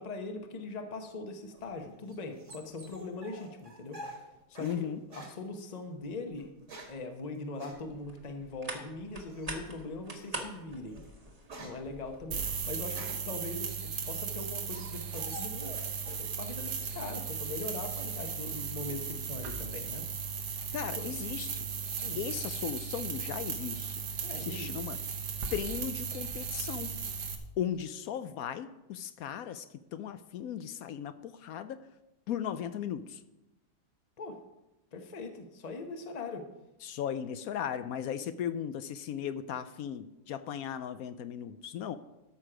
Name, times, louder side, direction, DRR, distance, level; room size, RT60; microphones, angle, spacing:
voice 1, 0.0-4.0 4.5-4.9 5.3-6.5 6.9-11.0 11.6-13.8 14.1-15.8 16.1-20.0 21.0-21.1 22.0-22.2 24.2-24.7 34.2-34.4 34.9-36.5, left 3 dB, 30° left, 5 dB, 0.9 m, -41 dB
sound 1, 1.5-4.8 5.1-5.4 6.3-7.1 7.6-7.8 9.3-9.7 10.2-10.4 10.8-13.4 13.9-16.3 16.5-17.2, right 1 dB, 50° right, 2.0 m, -48 dB
voice 2, 4.6-5.0 20.7-21.7 22.2-24.0 24.4-25.0 25.5-27.0 27.6-31.8 32.3-33.2 36.8-42.0, left 9 dB, 70° left, 12 dB, 0.9 m, -37 dB
sound 2, 7.7-12.9, right 2 dB, 25° right, 1.3 m, -45 dB
sound 3, 12.3-27.4, right 6 dB, 85° right, 1.7 m, -36 dB
13.0 x 6.4 x 5.0 m, 0.96 s
omnidirectional pair, 1.7 m